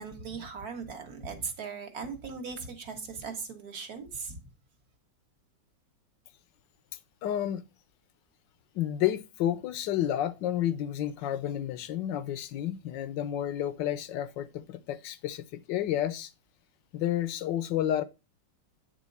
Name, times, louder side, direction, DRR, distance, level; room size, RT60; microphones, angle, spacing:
voice 1, 0.0-4.4, right 5 dB, 55° right, 1.8 m, -39 dB
voice 2, 7.2-7.6 8.7-16.3 16.9-18.0, left 11 dB, 80° left, 1.4 m, -30 dB
9.5 x 3.8 x 5.4 m
omnidirectional pair, 1.9 m